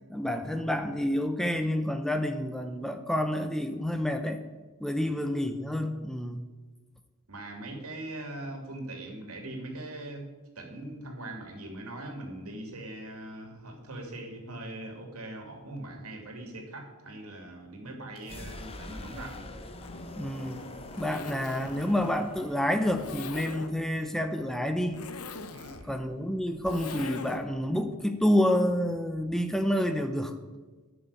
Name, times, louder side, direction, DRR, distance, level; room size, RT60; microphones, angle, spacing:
voice 1, 0.1-4.4 4.8-6.4 20.2-20.7 21.0-25.0 25.9-30.3, left 1 dB, ahead, 7 dB, 0.7 m, -28 dB
voice 2, 7.3-10.3 10.5-19.4 25.5-26.0, right 1 dB, 80° right, 3 dB, 2.9 m, -41 dB
sound 1, 18.1-25.8, left 2 dB, 25° left, 1.1 m, -46 dB
Zipper (clothing), 19.7-27.6, left 3 dB, 85° left, 1.0 m, -43 dB
11.0 x 7.0 x 9.1 m, 1.3 s
head